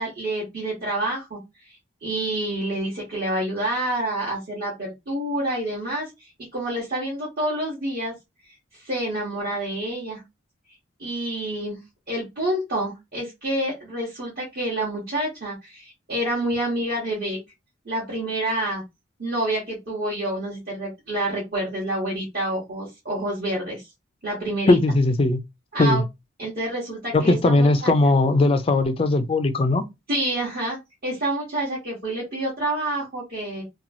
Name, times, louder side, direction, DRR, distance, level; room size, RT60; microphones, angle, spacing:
voice 1, 0.0-1.4 2.0-8.1 8.7-10.2 11.0-11.8 12.1-17.4 17.8-18.8 19.2-23.8 24.2-24.8 25.7-26.0 26.4-27.9 30.1-33.6, right 1 dB, 50° right, 1.1 m, -28 dB
voice 2, 24.7-25.4 25.8-26.0 27.1-29.8, left 2 dB, 30° left, 0.3 m, -19 dB
2.9 x 2.2 x 2.6 m
head